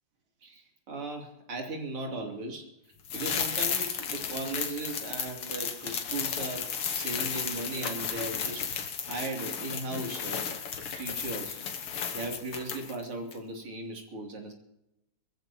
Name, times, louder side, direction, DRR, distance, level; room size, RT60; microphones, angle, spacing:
voice 1, 0.4-2.7 3.1-8.7 9.1-10.4 11.0-11.6 12.1-14.5, right 2 dB, 80° right, 1 dB, 3.8 m, -37 dB
sound 1, 3.1-13.0 13.3-13.4, left 7 dB, 85° left, 2.4 m, -34 dB
25.0 x 14.5 x 2.9 m, 0.85 s
omnidirectional pair, 2.4 m